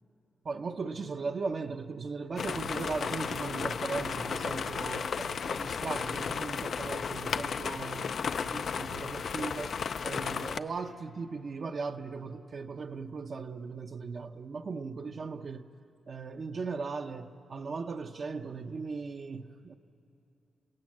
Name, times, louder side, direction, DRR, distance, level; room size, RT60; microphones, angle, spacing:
voice 1, 0.4-9.8 10.0-15.6 16.1-19.7, right 4 dB, 50° right, 0.7 m, -38 dB
sound 1, 2.4-10.6, left 6 dB, 60° left, 0.5 m, -34 dB
28.5 x 17.0 x 7.7 m
wide cardioid pair, 120°, 0 cm